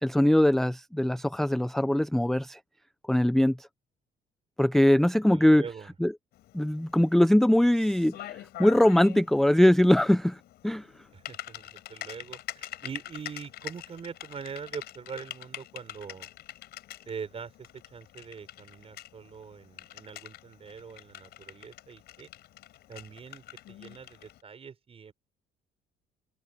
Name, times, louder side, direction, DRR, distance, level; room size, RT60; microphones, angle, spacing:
voice 1, 0.0-2.6 3.1-3.7 4.6-5.6 6.0-6.1 6.5-10.9, left 1 dB, ahead, 0.5 m, -22 dB
voice 2, 5.3-5.9 11.1-16.3 17.1-22.3 22.9-25.1, right 6 dB, 35° right, 5.1 m, -43 dB
Typing, 6.3-24.4, left 14 dB, 75° left, 6.4 m, -45 dB
cardioid pair, 110°, 17 cm